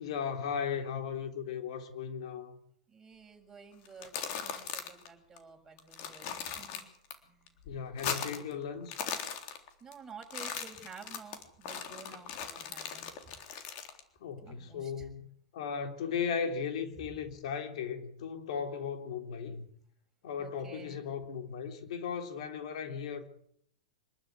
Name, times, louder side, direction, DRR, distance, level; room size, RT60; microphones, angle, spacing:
voice 1, 0.0-2.6 7.7-8.9 14.2-15.2 15.5-19.6 20.2-23.3, left 7 dB, 70° left, 3.6 m, -36 dB
voice 2, 2.9-6.9 7.2-7.5 8.1-8.5 9.8-13.4 14.4-15.1 20.4-21.1, right 5 dB, 10° right, 6.6 m, -51 dB
sound 1, 3.9-5.1 5.4-5.5 5.8-7.1 7.5-8.5 8.8-9.9 10.2-14.0, left 8 dB, 50° left, 3.7 m, -39 dB
25.5 x 13.0 x 9.5 m
hypercardioid pair, 125°, 3 cm